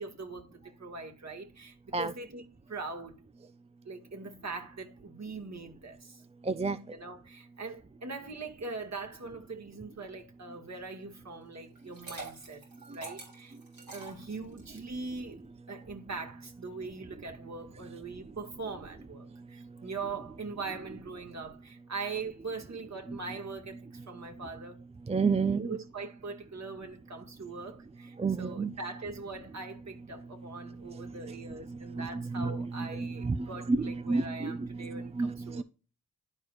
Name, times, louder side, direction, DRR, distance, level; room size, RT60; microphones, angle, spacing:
voice 1, 0.0-3.2 3.9-6.2 6.9-12.6 12.9-13.6 13.9-24.8 25.5-35.6, right 4 dB, 45° right, 1.9 m, -42 dB
voice 2, 6.4-6.8 20.9-21.0 23.1-23.2 25.1-25.8 28.2-28.7 30.9-35.6, right 4 dB, 15° right, 0.4 m, -31 dB
Liquid, 11.7-14.8, right 3 dB, 65° right, 3.4 m, -46 dB
11.5 x 4.7 x 2.5 m
supercardioid pair, 45°, 38 cm